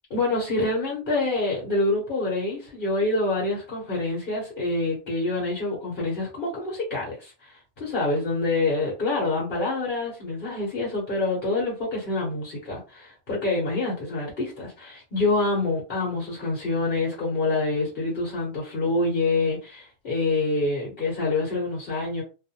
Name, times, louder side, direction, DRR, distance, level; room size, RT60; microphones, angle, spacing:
voice 1, 0.1-22.2, left 2 dB, 50° left, 1.1 m, -26 dB
2.4 x 2.2 x 2.7 m
omnidirectional pair, 1.2 m